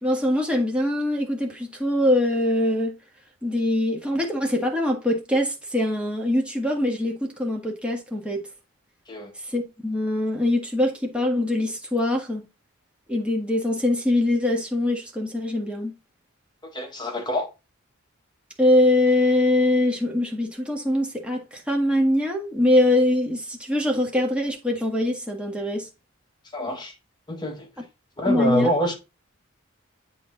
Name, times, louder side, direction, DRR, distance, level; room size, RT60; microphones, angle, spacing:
voice 1, 0.0-2.9 3.4-8.4 9.4-12.5 13.1-15.9 18.6-25.9 28.2-28.7, left 1 dB, 5° right, 1.6 m, -23 dB
voice 2, 16.6-17.5 26.5-26.9 27.3-27.7 28.2-28.9, equal, 20° left, 1.5 m, -26 dB
8.0 x 4.2 x 3.8 m
head